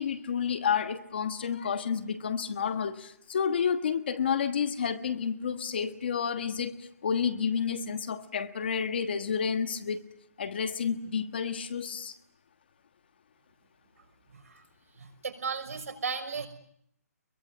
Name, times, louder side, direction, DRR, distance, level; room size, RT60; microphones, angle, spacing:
voice 1, 0.0-10.0 10.4-12.1, left 7 dB, 35° left, 9 dB, 1.3 m, -30 dB
voice 2, 14.3-14.6 15.0-16.5, right 5 dB, 60° right, 7 dB, 5.6 m, -35 dB
24.5 x 22.5 x 9.2 m, 0.71 s
hypercardioid pair, 180°, 9 cm